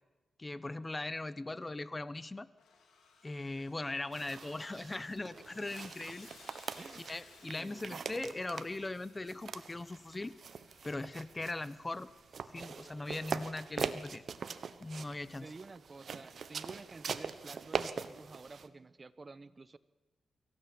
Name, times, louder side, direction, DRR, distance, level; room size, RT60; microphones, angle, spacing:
voice 1, 0.4-2.5 3.2-6.7 7.1-10.3 10.8-12.1 12.5-14.2 14.8-15.5, left 2 dB, 25° left, 16 dB, 1.1 m, -40 dB
Sawing, 2.6-12.8, left 5 dB, 85° left, 4.2 m, -61 dB
sound 1, 4.1-18.7, right 6 dB, 65° right, 1.4 m, -43 dB
voice 2, 6.8-7.1 7.6-7.9 15.4-19.8, right 3 dB, 35° right, 15 dB, 1.1 m, -51 dB
24.0 x 16.0 x 8.9 m, 1.2 s
cardioid pair, 75°, 0 cm